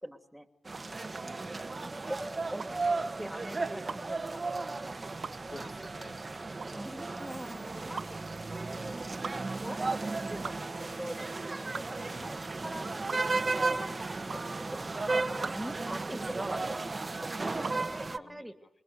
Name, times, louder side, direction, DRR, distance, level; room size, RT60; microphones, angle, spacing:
voice 1, 0.0-0.5 1.8-4.4 6.7-9.0 9.6-13.1 13.5-18.5, equal, 5° right, 7 dB, 2.7 m, -44 dB
sound 1, 0.6-18.2, right 3 dB, 35° right, 1.3 m, -35 dB
sound 2, 0.7-17.9, right 5 dB, 65° right, 1.4 m, -45 dB
voice 2, 1.2-1.9 5.5-6.2 12.1-12.3 17.6-18.7, left 2 dB, 55° left, 4 dB, 2.6 m, -51 dB
27.0 x 22.0 x 8.3 m, 0.71 s
cardioid pair, 70°, 0 cm